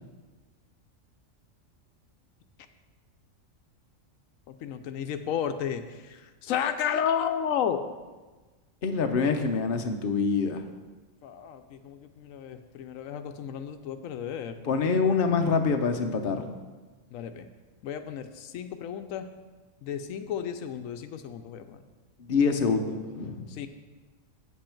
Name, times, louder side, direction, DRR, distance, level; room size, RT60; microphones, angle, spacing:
voice 1, 4.5-7.8 11.2-14.6 17.1-17.5 17.8-19.3 19.8-21.8 23.5-23.7, left 8 dB, 85° left, 8 dB, 1.0 m, -32 dB
voice 2, 8.8-10.6 14.7-16.4 22.2-23.5, left 5 dB, 50° left, 5 dB, 0.9 m, -25 dB
8.2 x 7.6 x 4.5 m, 1.3 s
omnidirectional pair, 1.4 m